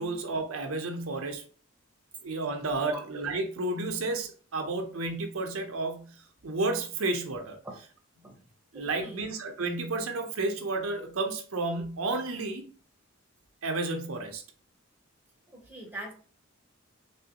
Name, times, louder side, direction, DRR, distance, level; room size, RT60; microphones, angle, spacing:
voice 1, 0.0-1.4 2.2-7.6 8.7-12.7 13.6-14.4, right 2 dB, 80° right, 5 dB, 0.7 m, -32 dB
voice 2, 8.7-9.3 15.5-16.1, right 1 dB, 10° right, 0 dB, 0.7 m, -42 dB
3.4 x 3.1 x 2.9 m, 0.41 s
head